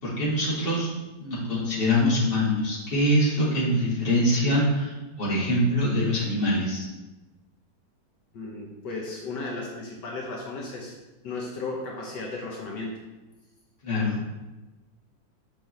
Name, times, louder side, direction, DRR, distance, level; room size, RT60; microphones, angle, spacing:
voice 1, 0.0-0.9 1.2-6.9 13.8-14.3, left 1 dB, 30° left, -7 dB, 2.2 m, -24 dB
voice 2, 8.3-11.0 11.2-13.0, left 3 dB, 70° left, -1 dB, 1.5 m, -35 dB
7.1 x 5.3 x 3.2 m, 1.1 s
omnidirectional pair, 2.0 m